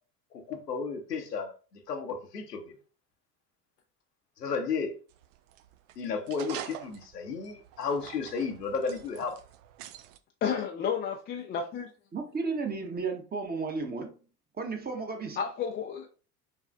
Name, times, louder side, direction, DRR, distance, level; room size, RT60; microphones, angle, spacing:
voice 1, 0.3-2.7 4.4-4.9 6.0-9.4, left 5 dB, 80° left, 1.0 m, -33 dB
sound 1, 5.1-10.2, right 11 dB, 55° right, 0.6 m, -46 dB
voice 2, 10.4-11.9 15.4-16.1, left 7 dB, 20° left, 0.4 m, -31 dB
voice 3, 12.1-14.1 14.6-15.4, right 4 dB, 20° right, 1.0 m, -33 dB
5.6 x 3.2 x 2.5 m
figure-of-eight pair, 70°, 48 cm